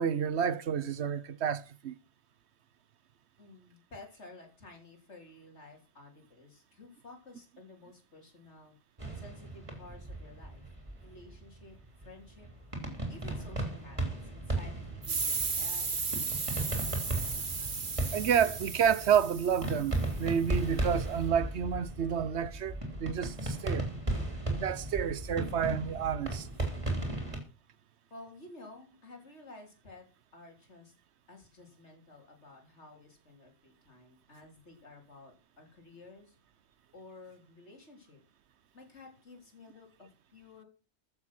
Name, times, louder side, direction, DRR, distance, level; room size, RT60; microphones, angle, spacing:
voice 1, 0.0-1.9 18.1-23.9 24.5-26.5, right 8 dB, 70° right, 1.0 m, -30 dB
voice 2, 3.4-8.7 9.1-10.6 11.0-12.5 13.1-16.4 28.1-30.1 30.3-30.9 31.3-36.4 36.9-38.2 38.7-40.6, left 2 dB, 70° left, 3.9 m, -53 dB
sound 1, 9.0-27.4, right 2 dB, 25° right, 3.5 m, -36 dB
sound 2, 15.0-20.3, right 4 dB, 45° right, 1.5 m, -35 dB
14.5 x 7.2 x 6.1 m
omnidirectional pair, 1.2 m